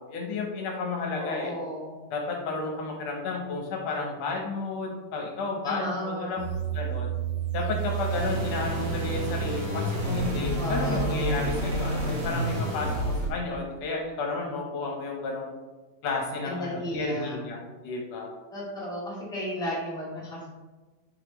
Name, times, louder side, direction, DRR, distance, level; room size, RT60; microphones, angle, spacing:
voice 1, 0.0-1.5 2.1-6.4 6.7-7.1 7.5-15.5 16.0-18.3, left 3 dB, 70° left, 0 dB, 1.6 m, -32 dB
voice 2, 1.1-1.9 5.6-6.5 10.6-11.2 16.4-17.4 18.5-20.5, equal, 5° left, -6 dB, 0.5 m, -34 dB
sound 1, 6.4-13.3, right 2 dB, 50° right, 1.8 m, -29 dB
8.0 x 5.0 x 3.0 m, 1.2 s
omnidirectional pair, 4.0 m